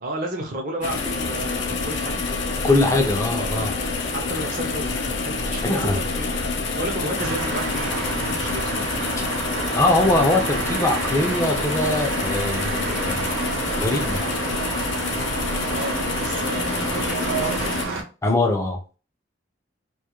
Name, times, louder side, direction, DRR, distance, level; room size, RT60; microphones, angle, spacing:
voice 1, 0.0-2.5 4.1-6.4 6.8-8.7 15.7-17.7, right 1 dB, 45° right, 1 dB, 0.5 m, -32 dB
sound 1, 0.8-17.8, left 3 dB, 70° left, 0.5 m, -27 dB
voice 2, 2.6-3.7 5.6-6.0 9.5-13.4 13.7-14.3 18.2-18.8, left 2 dB, 15° left, 3 dB, 0.4 m, -22 dB
sound 2, 7.2-18.0, right 4 dB, 90° right, 0.6 m, -29 dB
2.3 x 2.1 x 2.8 m, 0.34 s
head